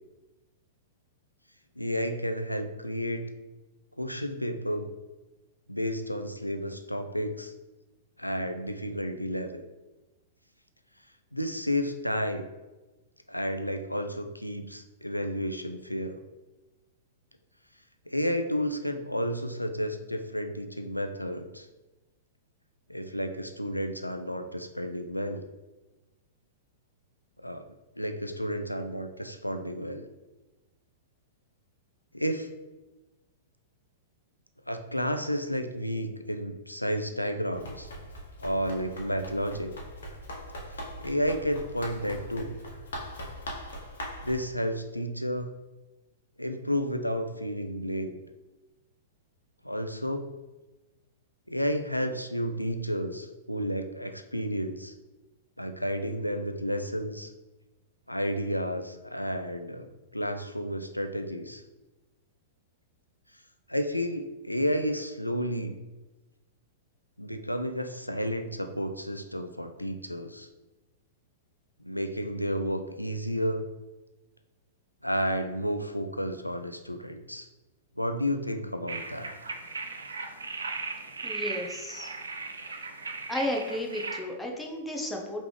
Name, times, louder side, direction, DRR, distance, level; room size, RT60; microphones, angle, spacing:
voice 1, 1.8-3.3 4.0-4.9 5.7-7.5 8.2-9.6 11.3-12.5 13.3-16.2 18.1-21.7 22.9-25.5 27.4-27.6 28.0-30.0 32.1-32.5 34.7-37.9 38.4-39.7 41.0-42.5 44.2-45.5 46.4-48.1 49.6-50.3 51.5-54.9 55.6-57.3 58.1-61.6 63.7-65.8 67.2-70.5 71.8-73.6 75.0-77.5 78.0-79.3, equal, 90° left, 7 dB, 0.4 m, -31 dB
Run, 37.5-44.4, equal, 65° left, 0.9 m, -41 dB
sound 1, 78.9-84.2, right 4 dB, 75° right, 0.5 m, -37 dB
voice 2, 81.2-82.1 83.3-85.4, left 1 dB, 5° left, 0 dB, 0.8 m, -33 dB
5.2 x 3.2 x 3.2 m, 1.1 s
figure-of-eight pair, 105°, 0 cm